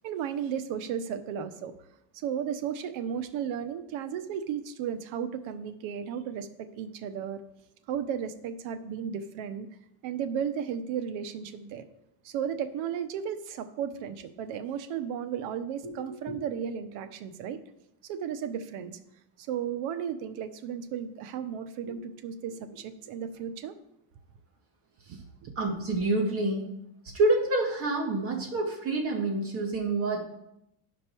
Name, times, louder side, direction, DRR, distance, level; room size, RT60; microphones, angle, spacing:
voice 1, 0.0-1.7 2.1-7.4 7.9-9.7 10.0-11.8 12.2-17.6 18.0-18.9 19.4-23.8 25.1-25.5, right 8 dB, 80° right, 10 dB, 0.9 m, -34 dB
voice 2, 25.6-26.7 27.1-30.2, right 2 dB, 30° right, 0 dB, 2.0 m, -27 dB
11.5 x 5.2 x 4.5 m, 0.82 s
cardioid pair, 160°, 46 cm